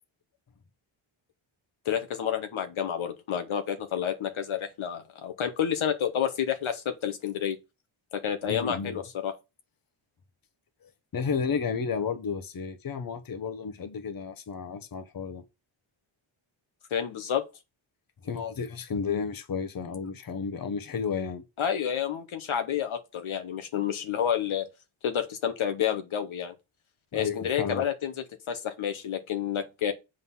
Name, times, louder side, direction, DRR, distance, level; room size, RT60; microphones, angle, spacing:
voice 1, 1.8-7.6 8.1-9.3 16.9-17.4 21.6-24.7 25.0-26.5 27.1-29.9, left 9 dB, 75° left, 1.2 m, -29 dB
voice 2, 8.5-9.0 10.8-15.4 18.2-21.4 27.1-27.8, left 6 dB, 45° left, 1.1 m, -32 dB
7.7 x 4.0 x 5.5 m
wide cardioid pair, 140°, 48 cm